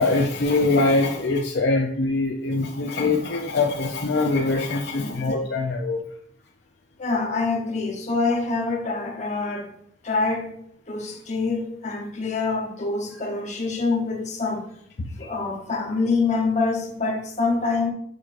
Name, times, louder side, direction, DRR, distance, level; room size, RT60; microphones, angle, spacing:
voice 1, 0.0-6.0 15.0-15.3, left 3 dB, 60° left, 0.5 m, -23 dB
voice 2, 7.0-9.7 10.0-10.5 10.9-14.7 15.2-17.9, left 3 dB, 40° left, 1.0 m, -25 dB
6.4 x 5.9 x 2.5 m
head